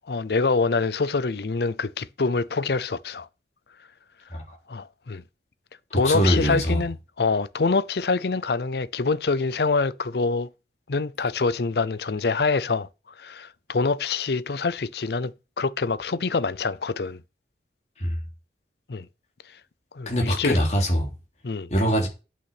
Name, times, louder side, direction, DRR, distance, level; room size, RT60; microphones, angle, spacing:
voice 1, 0.1-3.3 4.7-5.2 5.9-10.5 10.9-12.9 13.2-17.2 18.9-19.1 19.9-20.6 21.4-21.7, left 4 dB, 70° left, 0.6 m, -25 dB
voice 2, 6.0-6.8 18.0-18.1 20.0-21.1 21.7-22.1, equal, 40° left, 3.3 m, -22 dB
8.5 x 6.3 x 6.0 m
head